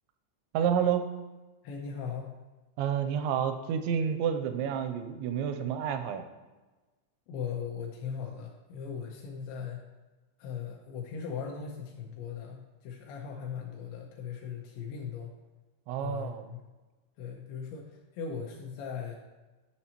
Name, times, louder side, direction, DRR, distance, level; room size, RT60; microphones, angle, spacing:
voice 1, 0.5-1.0 2.8-6.2 15.9-16.5, right 8 dB, 85° right, 8 dB, 2.6 m, -29 dB
voice 2, 1.6-2.3 7.3-9.8 10.4-15.3 16.0-16.6 17.2-19.2, left 7 dB, 80° left, 0 dB, 2.8 m, -39 dB
11.0 x 5.8 x 2.9 m, 1.2 s
omnidirectional pair, 5.4 m